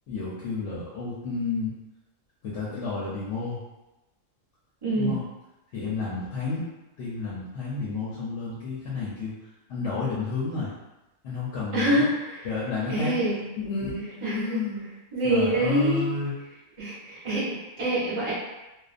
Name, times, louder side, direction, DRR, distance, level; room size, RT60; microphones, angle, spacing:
voice 1, 0.1-1.7 2.4-3.6 4.9-5.2 5.7-6.6 7.0-9.3 9.7-10.7 11.2-12.1 12.4-13.2 13.6-14.8 15.2-16.3, left 4 dB, 65° left, -7 dB, 0.9 m, -31 dB
voice 2, 4.8-5.1 11.7-12.5 12.9-13.4 14.2-14.6 15.1-16.1 16.8-18.3, right 1 dB, 30° right, -10 dB, 0.7 m, -25 dB
2.5 x 2.2 x 2.4 m, 1.0 s
omnidirectional pair, 1.4 m